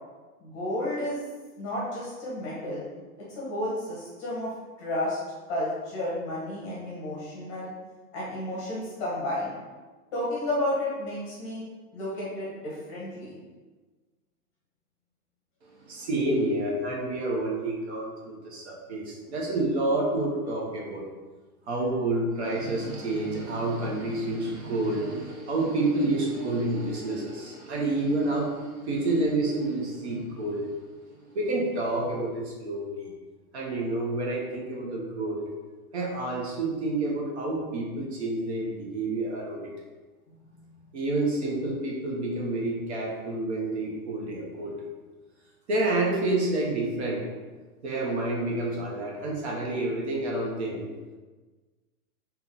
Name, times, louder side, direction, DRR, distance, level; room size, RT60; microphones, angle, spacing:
voice 1, 0.4-1.2 1.6-2.8 3.3-4.5 4.8-5.2 5.5-7.7 8.1-9.5 10.1-11.6 11.9-13.4, left 1 dB, 20° left, -6 dB, 0.8 m, -31 dB
voice 2, 15.7-21.0 21.7-33.1 33.5-35.4 35.9-39.7 40.9-44.8 45.7-47.2 47.8-50.9, right 2 dB, 45° right, -2 dB, 0.9 m, -29 dB
3.5 x 2.9 x 3.7 m, 1.3 s
hypercardioid pair, 170°, 46 cm